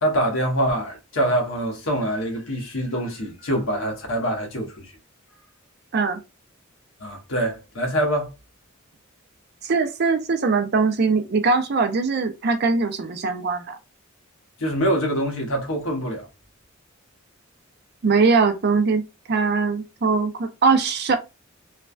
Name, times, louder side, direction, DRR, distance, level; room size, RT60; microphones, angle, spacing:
voice 1, 0.0-4.9 7.0-8.3 14.6-16.3, right 1 dB, 75° left, 1.1 m, -24 dB
voice 2, 9.6-13.8 18.0-21.2, right 4 dB, 50° right, 0.5 m, -21 dB
3.2 x 2.2 x 2.4 m
head